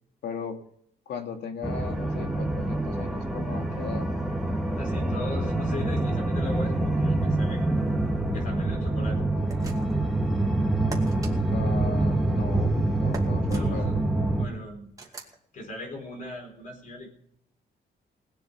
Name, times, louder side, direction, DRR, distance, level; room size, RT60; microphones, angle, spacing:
voice 1, 0.2-0.6 1.1-4.1 11.5-14.1, left 5 dB, 85° left, 5 dB, 2.1 m, -37 dB
sound 1, 1.6-14.5, right 2 dB, ahead, 1.6 m, -26 dB
voice 2, 4.8-7.9 8.3-9.2 13.5-13.9 14.4-14.9 15.5-17.1, left 1 dB, 50° left, 2 dB, 4.5 m, -38 dB
sound 2, 9.5-10.1 10.9-11.3 13.1-13.7 15.0-15.4, right 3 dB, 20° right, 2.3 m, -41 dB
19.5 x 7.9 x 6.8 m, 0.69 s
cardioid pair, 150°, 17 cm